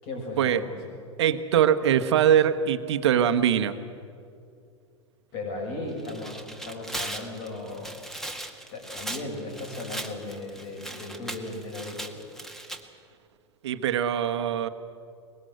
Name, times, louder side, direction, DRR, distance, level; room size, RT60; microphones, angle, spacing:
voice 1, 0.0-0.8 5.3-7.9 8.7-12.2, left 2 dB, 55° left, 1 dB, 7.4 m, -36 dB
voice 2, 1.2-3.7 13.6-14.7, right 9 dB, 65° right, 10 dB, 1.2 m, -22 dB
Tearing, 5.9-12.8, right 1 dB, 5° left, 2.0 m, -38 dB
23.5 x 21.0 x 8.0 m, 2.4 s
figure-of-eight pair, 85°, 15 cm